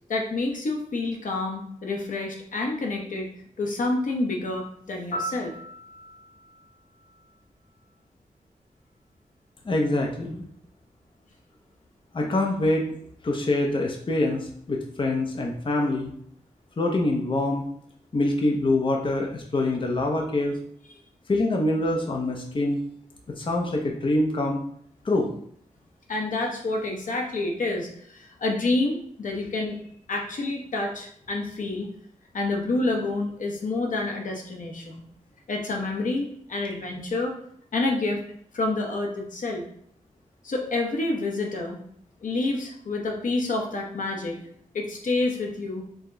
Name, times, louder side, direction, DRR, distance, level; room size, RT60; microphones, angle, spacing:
voice 1, 0.1-3.3 3.6-5.5 26.1-29.8 30.1-31.9 32.3-35.0 35.5-37.3 37.7-38.2 38.5-39.6 40.4-41.8 42.2-44.4 44.7-45.8, left 2 dB, 65° left, 1 dB, 0.9 m, -28 dB
Piano, 5.1-8.0 16.2-16.4, right 1 dB, 85° left, 1.2 m, -39 dB
voice 2, 9.7-10.4 12.1-12.9 13.2-16.1 16.8-17.6 18.1-20.6 21.3-22.8 23.4-24.6 25.0-25.4, left 2 dB, 35° left, 0 dB, 0.6 m, -25 dB
4.7 x 2.2 x 3.8 m, 0.66 s
wide cardioid pair, 100°, 14 cm